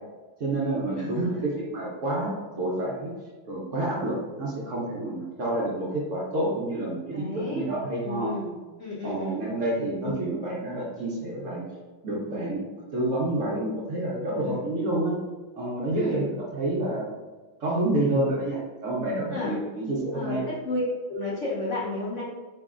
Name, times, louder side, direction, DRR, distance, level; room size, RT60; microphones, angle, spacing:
voice 1, 0.4-3.1 3.5-8.3 9.0-11.6 12.0-12.6 12.9-15.2 15.6-17.1 17.6-20.4, right 1 dB, 85° right, -6 dB, 0.6 m, -28 dB
voice 2, 7.1-7.6 8.0-8.5 8.8-9.4 14.4-14.6 15.9-16.3 19.3-19.6 20.1-22.2, left 2 dB, 85° left, -6 dB, 0.6 m, -31 dB
4.4 x 3.1 x 2.4 m, 1.3 s
omnidirectional pair, 2.3 m